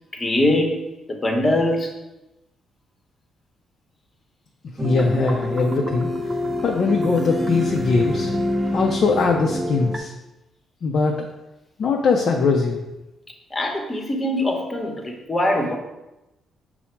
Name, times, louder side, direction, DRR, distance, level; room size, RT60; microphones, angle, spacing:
voice 1, 0.1-0.7 1.1-1.9 13.5-15.8, left 1 dB, 25° left, 1 dB, 0.9 m, -22 dB
voice 2, 4.8-8.3 8.7-10.1 10.8-11.3 11.8-12.8, left 4 dB, 55° left, 1 dB, 0.5 m, -21 dB
sound 1, 4.8-10.0, left 1 dB, 25° right, 0.5 m, -26 dB
5.6 x 2.0 x 4.4 m, 0.97 s
cardioid pair, 90°, 0 cm